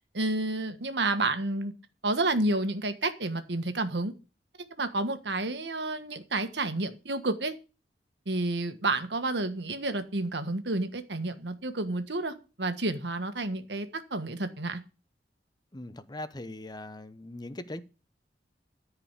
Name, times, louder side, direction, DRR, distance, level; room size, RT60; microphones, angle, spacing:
voice 1, 0.1-1.7 2.0-4.1 4.8-7.5 8.2-14.8, right 2 dB, 80° right, 1.5 m, -30 dB
voice 2, 15.7-17.8, left 1 dB, 25° left, 0.8 m, -40 dB
13.5 x 4.9 x 8.3 m
head